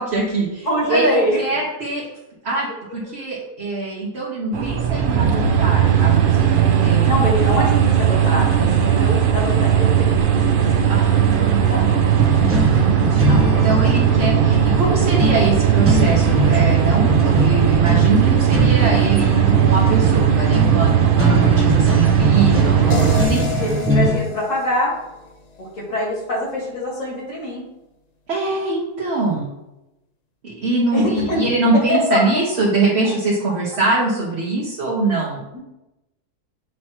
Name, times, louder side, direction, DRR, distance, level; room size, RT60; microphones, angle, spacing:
voice 1, 0.0-2.1 2.4-7.2 10.9-23.4 28.3-29.5 30.4-35.4, right 3 dB, 45° right, -5 dB, 1.4 m, -23 dB
voice 2, 0.7-1.4 7.0-11.8 13.3-14.2 23.6-25.0 25.6-27.6 30.9-31.5 31.9-32.2 34.6-34.7 35.5-35.6, left 1 dB, 50° left, -4 dB, 2.5 m, -24 dB
sound 1, 4.5-23.2, right 8 dB, 60° right, 0.5 m, -17 dB
sound 2, 12.1-24.2, right 1 dB, 15° right, 0.6 m, -22 dB
sound 3, 22.9-26.0, left 4 dB, 70° left, 0.4 m, -30 dB
7.7 x 3.1 x 4.4 m, 0.93 s
omnidirectional pair, 1.7 m